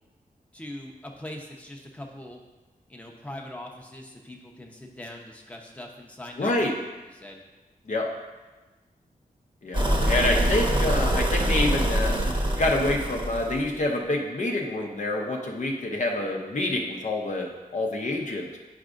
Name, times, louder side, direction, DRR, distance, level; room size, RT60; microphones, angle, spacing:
voice 1, 0.5-2.4 2.9-6.8 7.1-7.4, left 1 dB, 10° left, -1 dB, 0.9 m, -41 dB
voice 2, 6.4-6.7 7.9-8.1 9.6-12.1 12.6-18.6, left 2 dB, 50° left, 0 dB, 0.8 m, -27 dB
sound 1, 9.7-13.7, equal, 30° right, 1.0 m, -24 dB
9.3 x 4.8 x 2.5 m, 1.2 s
wide cardioid pair, 80°, 15 cm